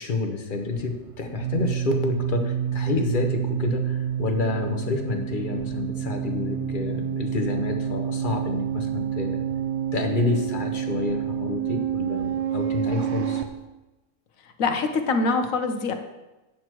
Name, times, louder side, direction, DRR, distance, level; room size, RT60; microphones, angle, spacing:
voice 1, 0.0-9.4 9.9-13.4, left 3 dB, 40° left, 4 dB, 0.9 m, -29 dB
sound 1, 0.6-13.4, right 9 dB, 60° right, 0.9 m, -28 dB
voice 2, 14.6-15.9, left 4 dB, 65° left, 6 dB, 1.2 m, -24 dB
8.9 x 6.0 x 4.5 m, 1.1 s
omnidirectional pair, 1.5 m